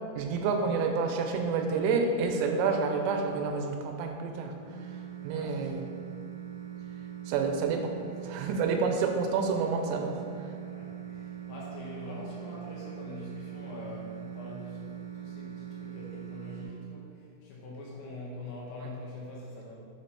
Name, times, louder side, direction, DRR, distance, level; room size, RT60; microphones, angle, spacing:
voice 1, 0.2-4.5 5.2-5.8 7.3-7.9 8.2-10.2, right 4 dB, 90° right, 4 dB, 3.2 m, -28 dB
sound 1, 4.6-16.6, right 10 dB, 70° right, 2.4 m, -42 dB
voice 2, 5.3-5.8 10.7-19.8, left 2 dB, 80° left, -5 dB, 2.8 m, -44 dB
7.5 x 3.3 x 4.1 m, 2.4 s
omnidirectional pair, 5.6 m